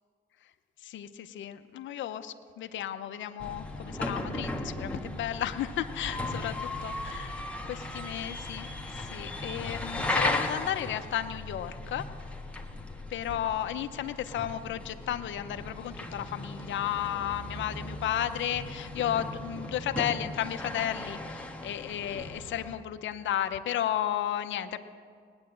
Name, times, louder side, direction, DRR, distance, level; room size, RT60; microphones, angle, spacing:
voice 1, 0.8-6.5 6.8-8.7 9.0-12.0 13.1-24.8, left 11 dB, 70° left, 9 dB, 0.8 m, -33 dB
sound 1, 3.4-22.8, left 1 dB, 5° left, 1.4 m, -37 dB
19.0 x 9.7 x 7.7 m, 2.1 s
cardioid pair, 90°, 20 cm